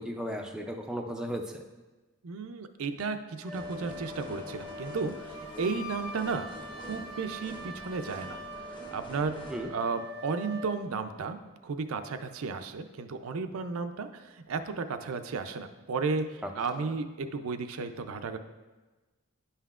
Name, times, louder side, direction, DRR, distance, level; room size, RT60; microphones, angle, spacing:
voice 1, 0.0-1.6 9.5-9.7 16.4-16.5 16.8-16.9, equal, 5° right, 2 dB, 0.3 m, -35 dB
voice 2, 2.2-6.5 6.7-8.4 8.9-9.4 9.7-18.4, right 4 dB, 90° right, 8 dB, 0.5 m, -34 dB
Wind instrument woodwind instrument, 3.4-10.9, left 1 dB, 55° left, 1.5 m, -43 dB
sound 1, 3.5-9.7, equal, 20° left, 0.9 m, -46 dB
10.0 x 5.6 x 2.4 m, 1.2 s
head